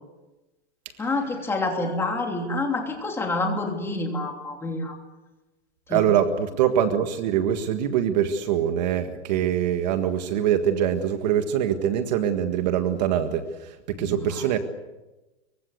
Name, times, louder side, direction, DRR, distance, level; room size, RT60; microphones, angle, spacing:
voice 1, 1.0-4.9 5.9-6.0 14.0-14.6, left 2 dB, 5° left, 2 dB, 3.1 m, -28 dB
voice 2, 5.9-14.6, right 9 dB, 40° right, 7 dB, 1.7 m, -24 dB
26.0 x 24.0 x 8.3 m, 1.1 s
supercardioid pair, 180°, 34 cm